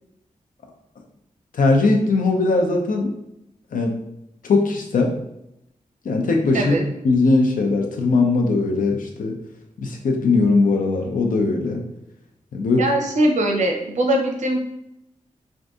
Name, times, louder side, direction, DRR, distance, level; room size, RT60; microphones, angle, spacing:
voice 1, 1.5-3.1 3.7-3.9 4.4-5.1 6.0-6.8 7.0-9.3 9.8-11.8 12.5-12.8, left 3 dB, 85° left, 2 dB, 0.6 m, -19 dB
voice 2, 6.5-6.8 12.7-14.6, right 1 dB, 65° right, 1 dB, 0.6 m, -21 dB
2.6 x 2.6 x 3.5 m, 0.84 s
wide cardioid pair, 145°, 14 cm